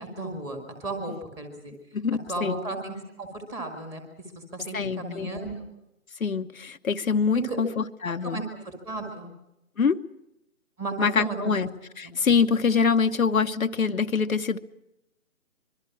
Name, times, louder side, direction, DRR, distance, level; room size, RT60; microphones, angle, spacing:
voice 1, 0.0-1.7 2.3-4.0 4.5-5.7 7.3-7.6 8.2-9.3 10.8-11.5 12.0-12.1, right 2 dB, 5° right, 4 dB, 1.8 m, -34 dB
voice 2, 1.9-2.5 4.7-5.3 6.2-8.4 9.8-10.0 11.0-11.7 12.0-14.6, left 5 dB, 65° left, 7 dB, 1.1 m, -24 dB
25.0 x 23.0 x 6.0 m, 0.88 s
figure-of-eight pair, 150°, 44 cm